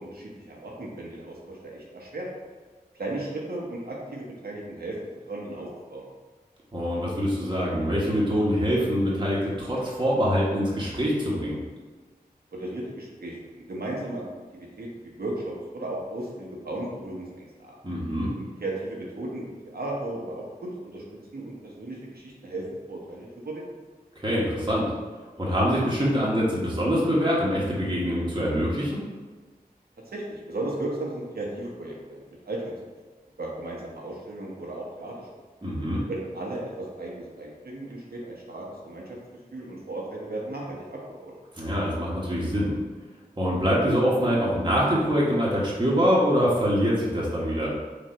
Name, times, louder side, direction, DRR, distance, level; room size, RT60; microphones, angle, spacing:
voice 1, 0.0-2.3 3.0-4.9 5.3-6.1 12.5-14.2 14.5-17.7 18.4-21.0 21.3-23.7 30.1-32.7 33.4-35.3 36.1-39.2 39.5-41.3, right 2 dB, 80° right, -3 dB, 1.0 m, -35 dB
voice 2, 6.7-11.6 17.8-18.3 24.2-24.9 25.4-29.0 35.6-36.0 41.5-42.7 43.4-47.7, equal, 30° right, -6 dB, 1.1 m, -24 dB
3.8 x 2.5 x 4.3 m, 1.4 s
wide cardioid pair, 45°, 16 cm